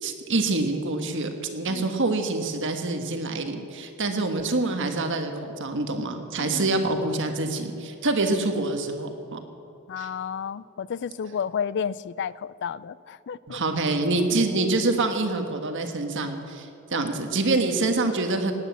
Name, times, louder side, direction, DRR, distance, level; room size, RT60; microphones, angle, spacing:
voice 1, 0.0-9.4 10.0-10.1 13.5-18.5, right 2 dB, 60° right, 6 dB, 1.5 m, -26 dB
voice 2, 6.4-6.9 9.9-13.6, left 7 dB, 55° left, 19 dB, 0.4 m, -32 dB
18.0 x 9.6 x 7.2 m, 2.8 s
head